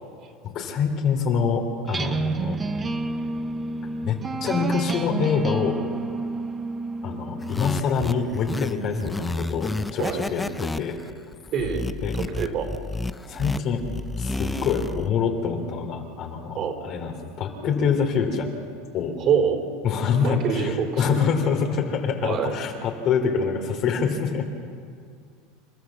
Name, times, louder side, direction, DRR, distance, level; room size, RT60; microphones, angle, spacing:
voice 1, 0.4-2.6 4.0-5.8 7.0-11.0 12.0-12.2 13.3-13.8 14.2-16.6 16.8-18.5 18.9-19.2 19.8-24.4, left 6 dB, 45° left, 3 dB, 3.0 m, -25 dB
sound 1, 1.9-7.8, right 3 dB, 20° right, 0.9 m, -30 dB
sound 2, 7.4-15.1, left 2 dB, 10° left, 0.5 m, -31 dB
voice 2, 11.5-11.9 12.1-12.7 16.5-16.8 19.2-19.6 20.2-21.2 22.2-22.5, right 7 dB, 45° right, 5 dB, 4.4 m, -25 dB
28.5 x 13.5 x 7.3 m, 2.2 s
supercardioid pair, 125°, 0 cm